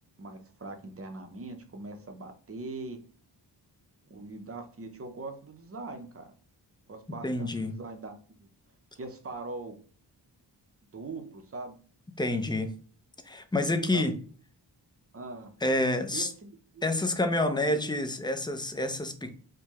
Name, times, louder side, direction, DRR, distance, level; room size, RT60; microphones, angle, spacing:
voice 1, 0.2-3.0 4.1-6.3 6.9-8.5 8.9-9.8 10.9-11.8 13.9-14.2 15.1-15.5 16.1-16.9 17.2-17.9, right 3 dB, 35° right, 0.7 m, -41 dB
voice 2, 7.2-7.8 12.2-12.7 13.3-14.2 15.6-16.3 16.8-19.3, left 1 dB, 10° left, 0.5 m, -28 dB
4.5 x 2.2 x 2.9 m
wide cardioid pair, 100°, 43 cm